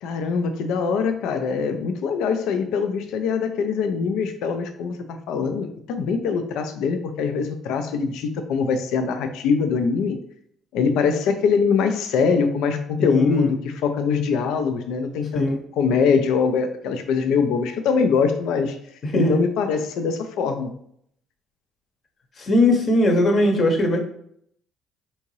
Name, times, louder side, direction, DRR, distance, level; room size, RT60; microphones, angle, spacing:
voice 1, 0.0-10.2 10.7-15.4 15.8-18.8 19.1-20.7, left 5 dB, 75° left, 7 dB, 0.4 m, -23 dB
voice 2, 13.0-13.5 15.3-15.6 19.0-19.4 22.4-24.0, left 1 dB, 50° left, 3 dB, 0.9 m, -20 dB
3.5 x 2.7 x 3.0 m, 0.67 s
supercardioid pair, 65°, 0 cm